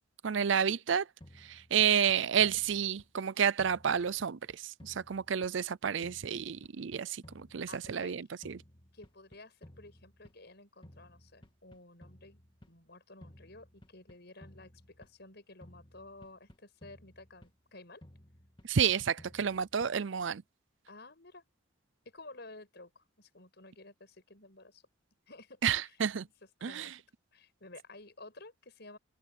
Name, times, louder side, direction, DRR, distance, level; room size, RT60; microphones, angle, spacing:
voice 1, 0.2-1.0 1.5-4.4 4.8-8.6 18.7-20.4 25.6-26.3 26.6-26.9, right 7 dB, 70° right, 0.5 m, -30 dB
sound 1, 1.2-3.3 3.6-5.8 6.0-8.1 8.4-10.5 10.8-12.8 13.2-15.3 15.6-17.7 18.0-20.1, left 1 dB, 25° left, 2.1 m, -57 dB
voice 2, 7.7-8.2 8.9-12.4 12.7-18.0 20.9-21.4 22.0-24.8 25.3-26.0 26.4-27.0 27.3-29.0, left 2 dB, 55° left, 6.8 m, -53 dB
head